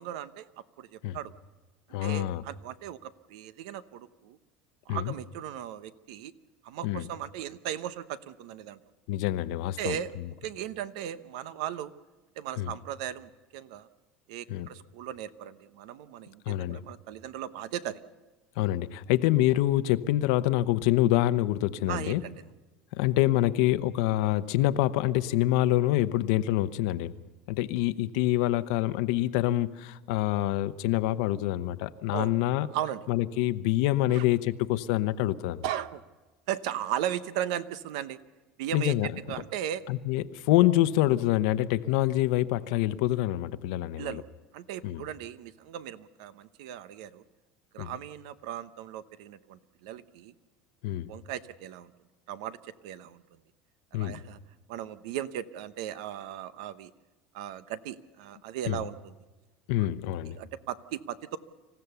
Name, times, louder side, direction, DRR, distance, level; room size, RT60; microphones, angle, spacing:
voice 1, 0.0-1.3 2.0-4.4 4.9-6.3 6.6-8.8 9.8-10.1 10.4-11.9 12.4-13.9 14.3-18.0 21.9-22.3 32.1-32.3 32.7-33.0 34.1-34.2 35.6-36.0 36.5-38.2 38.6-38.9 39.3-39.8 44.0-44.2 44.5-47.2 47.7-50.3 51.1-51.9 52.3-53.2 53.9-54.4 54.7-56.9 57.3-59.1 59.8-59.9 60.3-61.4, right 11 dB, 80° right, 13 dB, 0.9 m, -37 dB
voice 2, 1.9-2.4 4.9-5.1 6.8-7.1 9.1-10.0 12.6-12.7 14.5-14.7 16.5-16.8 18.6-22.2 22.9-27.1 27.5-32.7 33.1-35.6 38.7-39.1 39.9-44.2 44.8-45.0 47.8-47.9 50.8-51.1 53.9-54.2 58.6-58.8 59.7-60.4, left 15 dB, 75° left, 12 dB, 0.8 m, -26 dB
26.5 x 15.5 x 6.9 m, 1.2 s
cardioid pair, 145°, 3 cm